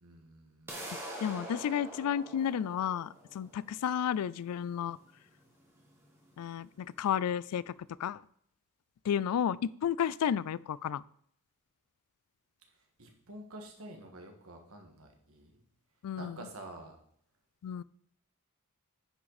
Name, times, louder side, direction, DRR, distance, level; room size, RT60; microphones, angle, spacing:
voice 1, 0.0-0.8 1.7-1.8 13.0-15.6 16.2-17.0, right 1 dB, 75° right, 3 dB, 1.8 m, -49 dB
sound 1, 0.7-6.6, right 1 dB, 10° right, 2.1 m, -46 dB
voice 2, 0.9-5.0 6.4-7.7 8.0-8.2 9.0-11.0 16.0-16.4 17.6-17.8, left 8 dB, 90° left, 21 dB, 0.3 m, -32 dB
9.8 x 5.8 x 4.1 m, 0.66 s
head